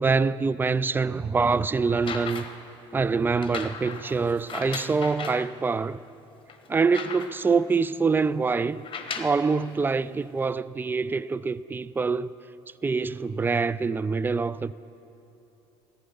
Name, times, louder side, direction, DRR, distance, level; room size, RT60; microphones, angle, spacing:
voice 1, 0.0-2.4 2.9-6.0 6.7-8.9 9.1-12.3 12.8-14.7, right 4 dB, 15° right, 0.3 m, -25 dB
sound 1, 1.9-2.7 3.4-5.5 6.1-6.2 6.5-7.6 8.7-9.4 10.4-10.5, left 6 dB, 35° left, 1.1 m, -37 dB
14.0 x 10.5 x 5.5 m
hypercardioid pair, 65°, 15 cm